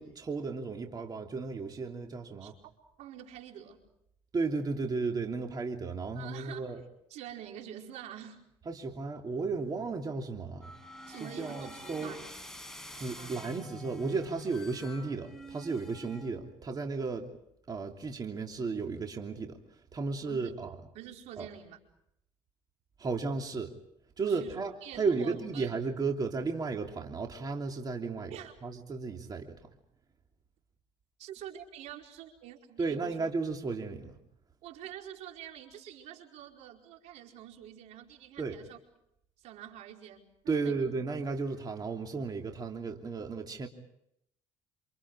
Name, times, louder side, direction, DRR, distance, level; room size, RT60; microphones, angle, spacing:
voice 1, 0.0-2.6 4.3-6.8 8.6-10.7 11.2-12.1 12.9-17.3 17.7-20.7 21.4-21.5 23.0-23.7 24.2-29.7 32.8-34.2 38.4-38.6 40.5-43.7, right 4 dB, 35° right, 3 dB, 3.1 m, -34 dB
voice 2, 3.0-3.8 6.1-6.7 7.1-8.5 11.1-12.3 13.1-13.4 20.2-20.5 20.9-21.8 24.2-25.8 28.3-28.5 31.2-33.2 34.6-38.8 39.4-40.9, right 10 dB, 75° right, 2 dB, 4.9 m, -46 dB
sound 1, 10.6-16.6, equal, 5° left, 5.6 m, -47 dB
28.5 x 28.0 x 4.9 m, 0.76 s
cardioid pair, 95°, 12 cm